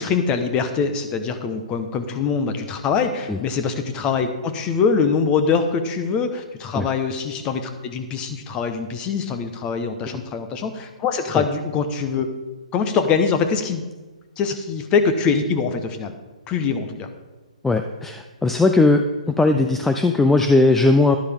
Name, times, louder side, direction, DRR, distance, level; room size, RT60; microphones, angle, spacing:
voice 1, 0.0-12.3 12.7-13.9 14.4-16.1 16.5-17.1, left 5 dB, 25° left, 8 dB, 1.1 m, -23 dB
voice 2, 17.6-19.0 19.4-21.2, left 2 dB, 5° left, 6 dB, 0.4 m, -18 dB
11.5 x 11.5 x 3.6 m, 1.2 s
hypercardioid pair, 135°, 4 cm